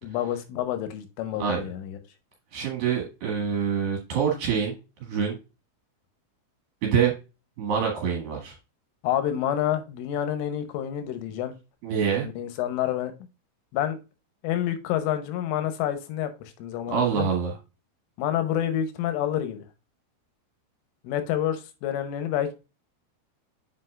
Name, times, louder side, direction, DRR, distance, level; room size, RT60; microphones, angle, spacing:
voice 1, 0.0-2.0 9.0-11.5 12.2-13.1 13.7-14.0 14.4-17.3 18.2-19.6 21.0-22.5, left 11 dB, 85° left, 3.3 m, -28 dB
voice 2, 2.5-5.4 6.8-7.1 7.6-8.5 11.8-12.3 16.9-17.5, right 7 dB, 60° right, 2.8 m, -26 dB
7.7 x 5.8 x 2.4 m
omnidirectional pair, 5.8 m